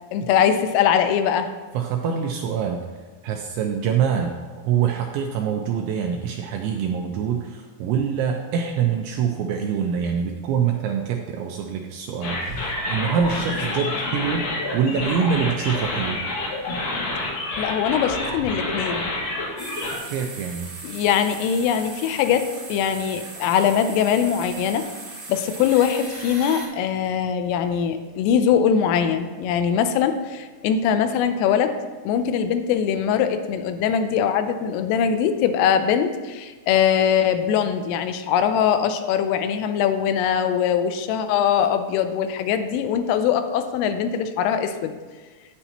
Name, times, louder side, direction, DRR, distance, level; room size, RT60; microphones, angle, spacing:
voice 1, 0.1-1.5 17.6-19.1 20.8-24.9 25.3-31.8 32.1-44.9, left 8 dB, 85° left, 8 dB, 3.2 m, -22 dB
voice 2, 1.7-2.8 3.2-4.3 4.6-14.4 14.7-16.2 20.1-20.7, right 7 dB, 85° right, 2 dB, 2.6 m, -25 dB
sound 1, 12.2-20.0, left 2 dB, 55° left, 2.8 m, -28 dB
sound 2, 19.6-26.7, right 3 dB, 40° right, 1.2 m, -38 dB
9.8 x 9.1 x 2.9 m, 1.4 s
omnidirectional pair, 5.8 m